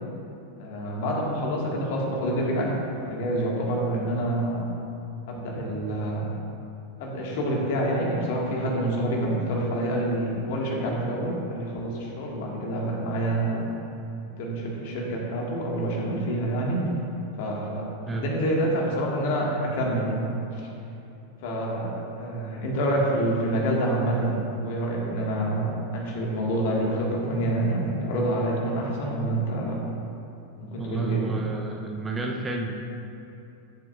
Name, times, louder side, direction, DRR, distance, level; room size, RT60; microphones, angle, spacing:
voice 1, 0.6-4.6 5.2-6.2 7.0-13.7 14.4-16.8 17.4-17.8 18.1-20.3 20.5-20.7 21.4-29.7 30.5-31.4, right 1 dB, 50° left, -2 dB, 1.8 m, -27 dB
voice 2, 30.8-32.7, right 3 dB, 15° right, 1 dB, 0.7 m, -30 dB
13.5 x 7.6 x 2.5 m, 2.9 s
figure-of-eight pair, 90°, 0 cm